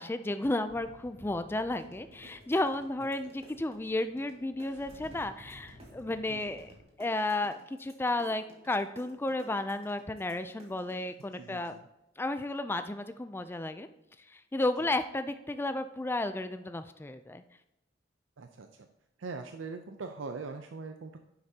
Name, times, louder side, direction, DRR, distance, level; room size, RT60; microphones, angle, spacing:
voice 1, 0.0-6.7 7.0-11.8 12.2-13.9 14.3-17.4, left 2 dB, 10° left, 10 dB, 0.3 m, -33 dB
sound 1, 0.7-6.8, equal, 85° left, 3.0 m, -55 dB
sound 2, 1.8-4.3 4.6-11.2, right 1 dB, 30° right, 1.9 m, -55 dB
voice 2, 11.3-11.8 18.4-18.9 19.2-21.2, right 4 dB, 75° right, 6 dB, 0.6 m, -42 dB
10.0 x 7.8 x 2.8 m, 0.90 s
head